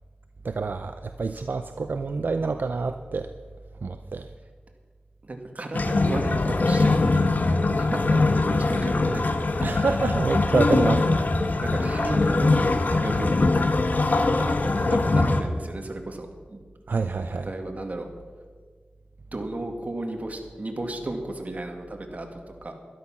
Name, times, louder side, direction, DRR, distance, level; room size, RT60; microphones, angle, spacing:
voice 1, 0.4-3.3 3.8-4.3 9.6-11.2 16.9-17.5, right 4 dB, 70° right, 9 dB, 0.5 m, -27 dB
voice 2, 5.2-7.4 7.8-9.4 11.6-13.4 14.1-16.6 17.3-18.1 19.3-22.7, right 2 dB, 45° right, 4 dB, 2.0 m, -34 dB
sound 1, 5.7-15.4, left 3 dB, 55° left, 1.2 m, -22 dB
12.5 x 12.0 x 6.0 m, 1.5 s
wide cardioid pair, 60°, 3 cm